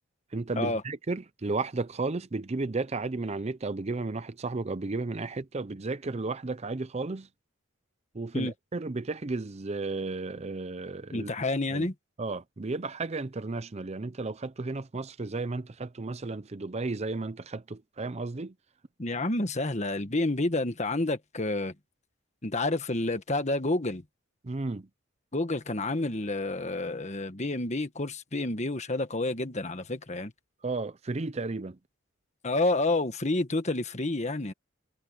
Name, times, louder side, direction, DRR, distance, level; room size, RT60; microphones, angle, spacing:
voice 1, 0.3-7.3 8.1-11.3 11.7-11.9 12.2-18.5 24.4-24.9 30.6-31.8, right 3 dB, 30° right, 0.6 m, -33 dB
voice 2, 11.1-11.9 19.0-21.7 22.4-24.0 25.3-30.3 32.4-34.5, left 2 dB, 35° left, 1.5 m, -29 dB
head